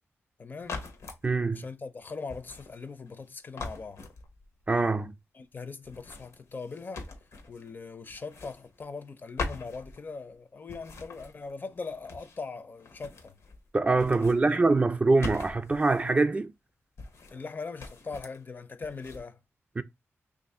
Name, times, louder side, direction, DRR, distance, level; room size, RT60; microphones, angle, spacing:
voice 1, 0.4-0.8 1.5-4.0 5.3-7.1 7.5-13.3 14.2-14.7 17.3-19.4, left 4 dB, 40° left, 0.5 m, -41 dB
sound 1, 0.6-1.3 2.3-3.3 3.6-4.6 5.8-7.7 8.1-9.1 9.4-10.3 10.7-12.5 12.8-13.7 13.9-16.1 17.0-17.5 17.8-18.4 18.8-19.2, left 3 dB, 85° left, 0.8 m, -42 dB
voice 2, 1.2-1.6 4.7-5.1 13.7-16.5 19.8-19.9, right 3 dB, 25° right, 0.3 m, -24 dB
3.0 x 2.5 x 4.2 m
wide cardioid pair, 120°, 5 cm